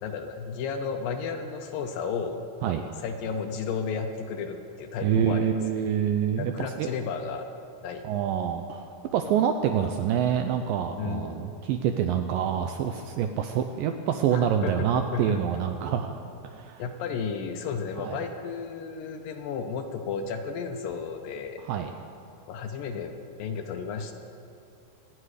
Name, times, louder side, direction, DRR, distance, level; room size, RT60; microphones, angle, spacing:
voice 1, 0.0-2.5 3.0-5.5 6.4-7.5 7.8-8.0 11.0-11.6 14.3-15.4 16.8-21.6 22.5-24.1, left 6 dB, 75° left, 6 dB, 2.1 m, -33 dB
voice 2, 5.0-6.9 8.0-16.2 16.4-16.8 18.0-18.2 21.6-21.9, right 8 dB, 90° right, 6 dB, 2.0 m, -26 dB
25.5 x 9.8 x 4.9 m, 2.6 s
omnidirectional pair, 4.7 m